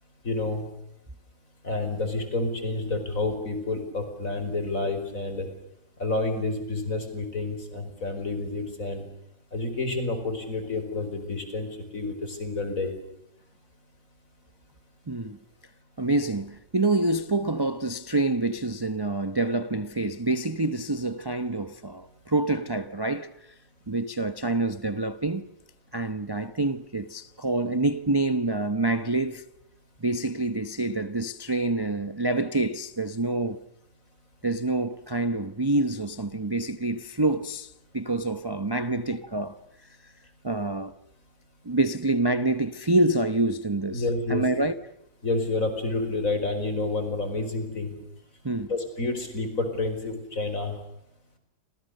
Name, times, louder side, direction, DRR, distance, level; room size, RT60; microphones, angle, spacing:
voice 1, 0.2-0.7 1.6-5.5 6.0-9.0 9.5-11.7 11.9-12.9 43.9-44.4 45.2-47.9 48.7-50.7, left 2 dB, 45° left, 5.2 m, -29 dB
voice 2, 15.1-15.4 16.0-23.5 23.9-25.4 25.9-29.5 30.0-33.6 34.4-39.6 40.0-40.1 40.4-40.9 41.6-44.0 44.3-44.8 48.4-48.7, right 2 dB, 20° right, 0.7 m, -27 dB
30.0 x 27.0 x 6.7 m
omnidirectional pair, 1.9 m